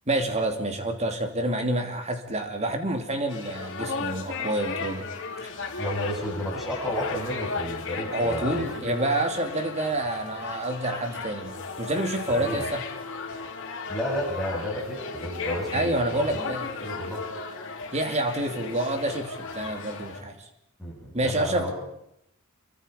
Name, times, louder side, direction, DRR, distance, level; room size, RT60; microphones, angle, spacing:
voice 1, 0.1-5.1 5.4-5.5 8.1-12.8 15.7-16.7 17.9-20.5 21.1-21.7, right 1 dB, 30° right, 5 dB, 2.9 m, -28 dB
sound 1, 3.3-20.2, left 4 dB, 60° left, 3.1 m, -35 dB
voice 2, 5.8-8.9 12.3-12.7 13.9-16.4 16.8-17.3 20.8-21.7, equal, ahead, -3 dB, 7.6 m, -32 dB
27.5 x 23.5 x 5.3 m, 0.78 s
head